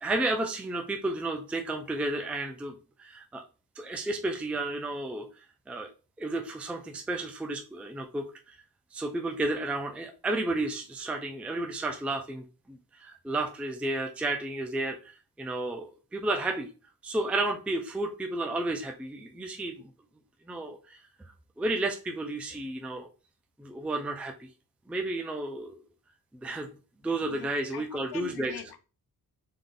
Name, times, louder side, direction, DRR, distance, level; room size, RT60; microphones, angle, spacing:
voice 1, 0.0-3.4 3.8-5.3 5.7-5.9 6.2-8.6 8.9-16.7 17.0-19.9 20.5-21.0 21.6-23.1 23.6-24.5 24.9-25.8 26.3-26.7 27.0-28.6, right 2 dB, 5° right, 0.4 m, -32 dB
voice 2, 27.7-28.8, left 9 dB, 85° left, 0.6 m, -42 dB
3.6 x 2.5 x 3.7 m
wide cardioid pair, 115°, 37 cm